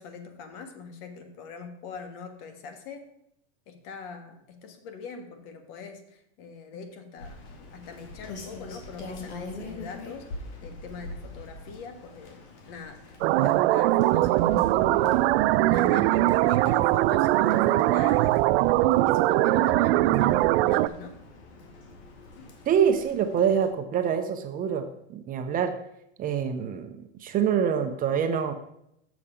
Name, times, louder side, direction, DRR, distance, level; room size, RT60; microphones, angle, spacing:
voice 1, 0.0-3.1 3.7-7.4 7.7-10.3 10.6-18.5 19.0-21.2 22.4-22.5, left 5 dB, 60° left, 7 dB, 1.5 m, -42 dB
Rain, 7.2-23.7, left 3 dB, 80° left, 1.9 m, -45 dB
sound 1, 13.2-20.9, right 16 dB, 70° right, 0.5 m, -21 dB
voice 2, 22.7-25.7 26.2-28.5, right 8 dB, 25° right, 7 dB, 0.6 m, -26 dB
7.1 x 6.9 x 4.9 m, 0.78 s
supercardioid pair, 145°, 33 cm